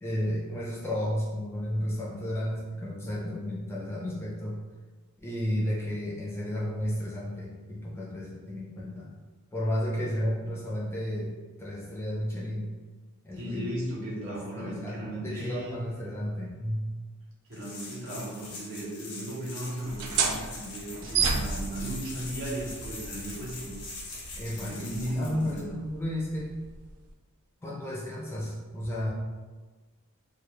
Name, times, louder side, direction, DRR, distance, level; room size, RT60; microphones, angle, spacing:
voice 1, 0.0-4.6 5.2-9.1 9.5-11.3 11.6-12.7 13.2-13.8 14.2-16.9 24.4-26.5 27.6-29.1, equal, 10° left, -5 dB, 0.3 m, -33 dB
voice 2, 13.3-15.8 17.5-23.7 24.5-25.8, right 1 dB, 60° right, -5 dB, 0.7 m, -36 dB
sound 1, 17.5-25.6, left 3 dB, 85° left, 0.6 m, -43 dB
sound 2, 19.8-27.1, right 5 dB, 85° right, 0.3 m, -33 dB
2.1 x 2.1 x 3.0 m, 1.3 s
head